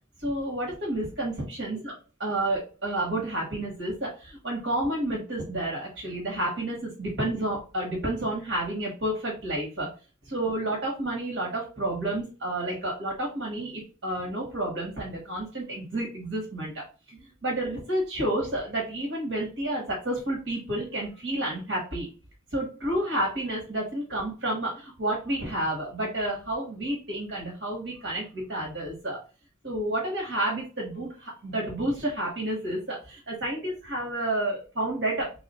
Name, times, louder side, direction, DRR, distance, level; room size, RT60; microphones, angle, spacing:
voice 1, 0.2-1.9 2.2-9.9 10.3-22.1 22.5-29.2 29.6-35.3, right 1 dB, 65° right, -2 dB, 1.1 m, -30 dB
3.0 x 2.3 x 4.1 m, 0.35 s
head